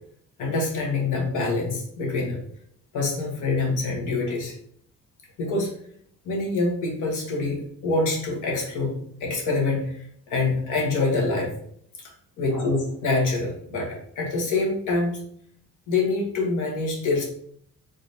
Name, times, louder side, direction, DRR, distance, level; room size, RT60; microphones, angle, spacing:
voice 1, 0.4-2.4 2.9-4.5 5.4-5.7 6.2-11.5 12.4-15.2 15.9-17.2, left 3 dB, 80° left, -1 dB, 1.2 m, -25 dB
3.9 x 3.2 x 2.8 m, 0.66 s
cardioid pair, 90°, 30 cm